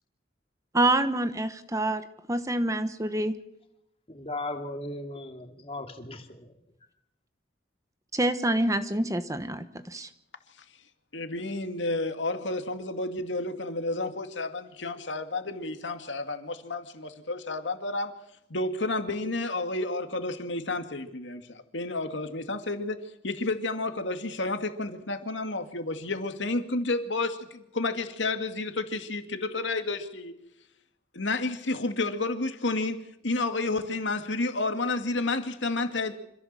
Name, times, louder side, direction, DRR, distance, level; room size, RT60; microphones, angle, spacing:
voice 1, 0.7-3.4 8.1-10.1, right 1 dB, 15° right, 10 dB, 1.1 m, -27 dB
voice 2, 4.1-6.5, left 2 dB, 30° left, 4 dB, 2.6 m, -37 dB
voice 3, 11.1-18.1 18.5-23.0 23.2-30.3 31.1-36.1, left 2 dB, 80° left, 7 dB, 2.3 m, -31 dB
26.0 x 16.0 x 7.6 m, 0.81 s
head